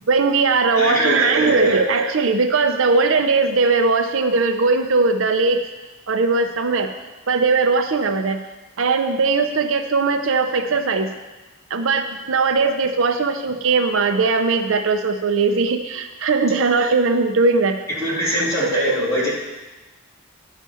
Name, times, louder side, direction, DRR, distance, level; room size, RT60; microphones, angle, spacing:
voice 1, 0.1-5.6 6.1-6.9 7.3-8.4 8.8-11.1 11.7-17.8 18.2-19.3, right 4 dB, 70° right, 7 dB, 0.6 m, -19 dB
voice 2, 0.8-1.8 17.9-19.3, left 1 dB, 15° left, -8 dB, 2.6 m, -23 dB
11.0 x 4.9 x 5.6 m, 1.1 s
head